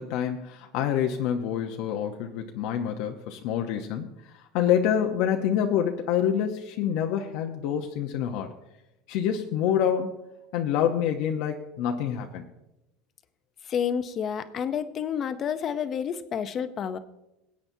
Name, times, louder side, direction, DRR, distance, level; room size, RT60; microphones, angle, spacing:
voice 1, 0.0-4.1 4.5-8.5 9.1-10.2 10.5-12.4, left 9 dB, 65° left, 3 dB, 0.8 m, -27 dB
voice 2, 13.7-17.0, left 8 dB, 30° left, 11 dB, 0.7 m, -29 dB
22.5 x 8.6 x 2.7 m, 0.92 s
cardioid pair, 150°, 0 cm